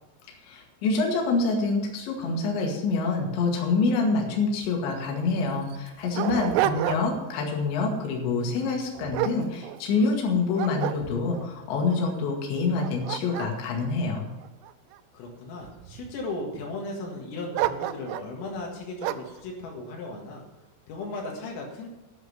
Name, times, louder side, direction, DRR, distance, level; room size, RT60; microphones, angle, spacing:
voice 1, 0.5-14.3, left 3 dB, 65° left, 0 dB, 4.2 m, -26 dB
Dog, 4.6-4.7 5.0-5.1 5.7-7.3 7.7-8.0 8.6-10.1 10.6-11.5 12.1-12.2 12.6-15.0 15.6-16.3 17.5-18.3 19.0-19.4, right 14 dB, 85° right, 3.2 m, -31 dB
voice 2, 6.7-7.2 15.1-20.4 20.9-21.9, left 2 dB, 85° left, 0 dB, 4.4 m, -36 dB
9.8 x 7.5 x 9.4 m, 1.0 s
omnidirectional pair, 5.8 m